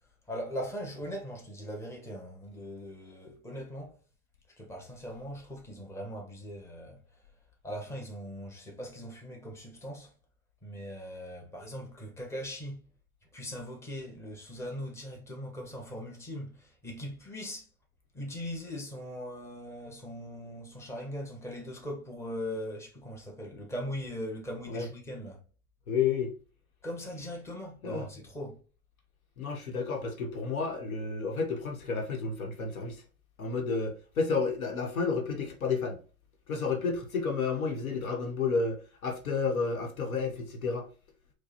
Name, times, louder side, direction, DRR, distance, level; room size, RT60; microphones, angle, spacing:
voice 1, 0.3-4.0 4.6-7.0 7.6-10.1 10.6-12.9 13.3-17.7 18.1-25.4 26.8-28.6, equal, 5° left, 0.9 m, -40 dB
voice 2, 25.9-26.3 27.8-28.1 29.4-33.0 33.4-36.0 36.5-40.9, left 5 dB, 75° left, 1.1 m, -31 dB
4.7 x 2.2 x 2.9 m
hypercardioid pair, 100°, 42 cm